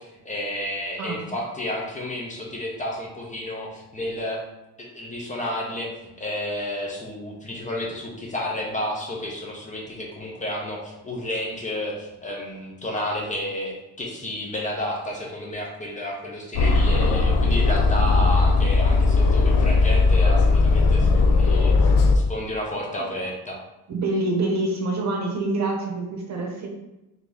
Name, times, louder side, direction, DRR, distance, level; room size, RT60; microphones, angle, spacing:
voice 1, 0.0-4.4 4.8-5.9 6.2-23.6, left 1 dB, 20° left, -2 dB, 0.7 m, -31 dB
Aircraft, 16.5-22.2, left 3 dB, 70° left, 0.6 m, -18 dB
voice 2, 23.9-26.7, right 2 dB, 50° right, 1 dB, 0.9 m, -26 dB
4.0 x 2.8 x 3.4 m, 0.98 s
cardioid pair, 145°, 35 cm